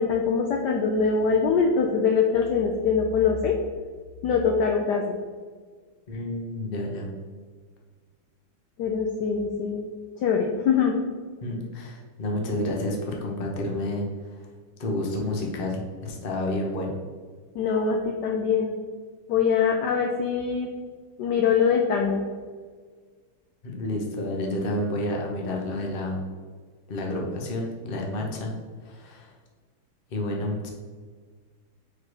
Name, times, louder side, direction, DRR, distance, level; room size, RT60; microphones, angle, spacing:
voice 1, 0.0-3.6 4.2-5.2 8.8-9.9 10.2-10.9 17.6-18.7 19.3-20.7 21.2-22.2, left 6 dB, 80° left, 2 dB, 0.9 m, -23 dB
voice 2, 6.1-7.1 11.4-14.4 14.8-17.0 23.6-26.2 26.9-28.5 28.8-29.3 30.1-30.7, left 1 dB, 45° left, 0 dB, 0.7 m, -30 dB
4.8 x 4.6 x 4.7 m, 1.5 s
omnidirectional pair, 2.4 m